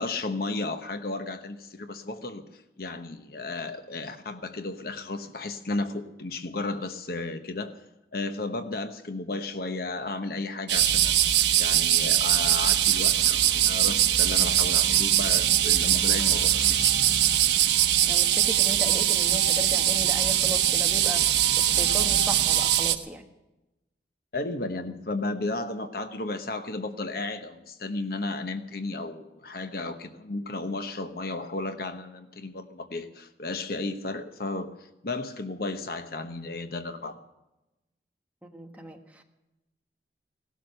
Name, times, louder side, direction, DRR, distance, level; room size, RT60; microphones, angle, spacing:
voice 1, 0.0-7.7 8.1-11.2 11.6-17.0 24.3-34.7 35.0-37.2, left 2 dB, 55° left, 8 dB, 1.0 m, -34 dB
sound 1, 10.7-23.0, right 11 dB, 80° right, 1.0 m, -22 dB
voice 2, 18.0-23.2 38.4-39.2, equal, 10° right, 2 dB, 1.4 m, -37 dB
17.5 x 12.5 x 6.7 m, 0.98 s
head